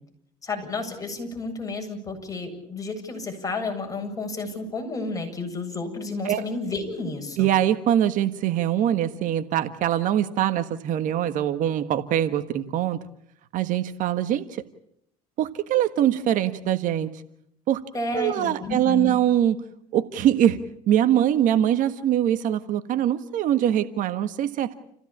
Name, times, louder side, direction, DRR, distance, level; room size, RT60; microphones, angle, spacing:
voice 1, 0.4-7.5 17.9-19.2, left 3 dB, 25° left, 3 dB, 7.9 m, -31 dB
voice 2, 7.4-13.0 13.5-14.6 15.4-17.1 17.7-17.8 18.1-19.6 19.9-20.6 20.9-24.7, right 11 dB, 60° right, 11 dB, 1.5 m, -23 dB
29.5 x 16.5 x 8.7 m, 0.72 s
cardioid pair, 105°, 15 cm